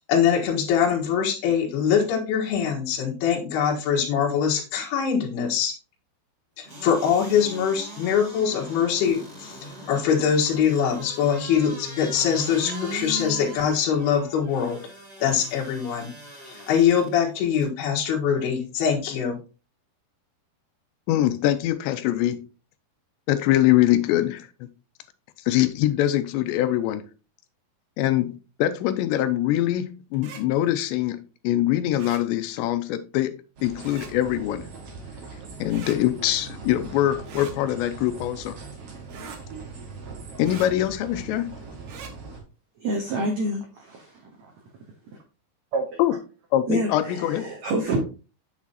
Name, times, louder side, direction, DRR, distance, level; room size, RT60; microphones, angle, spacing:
voice 1, 0.1-5.7 6.6-9.6 9.9-14.8 15.2-16.1 16.5-19.4, left 7 dB, 70° left, 3.4 m, -23 dB
sound 1, 6.6-17.1 17.6-17.7, equal, 10° right, 2.3 m, -40 dB
voice 2, 21.1-22.4 23.3-24.7 25.5-27.1 28.0-28.3 28.6-33.3 33.6-34.7 35.6-38.6 40.4-41.5 46.0-46.1 46.5-47.5, left 13 dB, 90° left, 3.0 m, -23 dB
sound 2, 30.1-30.4 32.0-32.2 33.8-34.1 35.7-36.0 37.2-37.6 39.1-39.4 40.4-40.7 41.8-42.1, right 5 dB, 70° right, 1.8 m, -41 dB
sound 3, 33.6-42.4, right 4 dB, 45° right, 2.0 m, -41 dB
voice 3, 42.8-44.5 45.7-46.0 46.7-48.0, right 2 dB, 85° right, 1.5 m, -28 dB
8.3 x 7.3 x 2.9 m
omnidirectional pair, 5.0 m